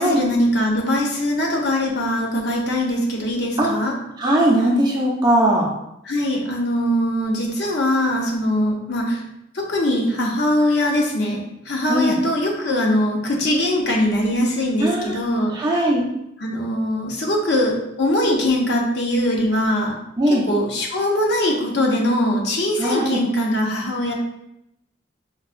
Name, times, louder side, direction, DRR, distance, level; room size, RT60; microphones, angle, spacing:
voice 1, 0.0-3.9 6.0-9.2 9.5-15.5 16.4-19.9 20.3-24.1, left 1 dB, 60° left, -1 dB, 0.7 m, -21 dB
voice 2, 4.2-5.7 11.9-12.2 14.8-15.2 15.5-16.0 20.2-20.4 22.8-23.2, right 1 dB, 20° right, -3 dB, 0.5 m, -19 dB
4.6 x 2.3 x 2.5 m, 0.82 s
head